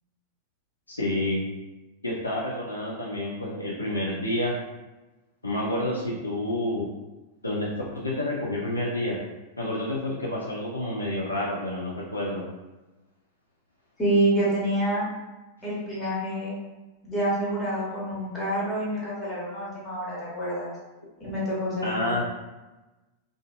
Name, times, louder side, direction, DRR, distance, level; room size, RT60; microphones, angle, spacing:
voice 1, 0.9-1.4 2.0-4.6 5.4-6.9 7.4-7.7 7.9-9.2 9.6-12.4 21.8-22.2, left 1 dB, 80° left, -4 dB, 0.4 m, -29 dB
voice 2, 14.0-15.1 15.6-16.5 17.0-20.7 21.2-22.1, right 1 dB, 25° left, -7 dB, 1.1 m, -27 dB
2.5 x 2.4 x 2.2 m, 1.1 s
figure-of-eight pair, 90°, 0 cm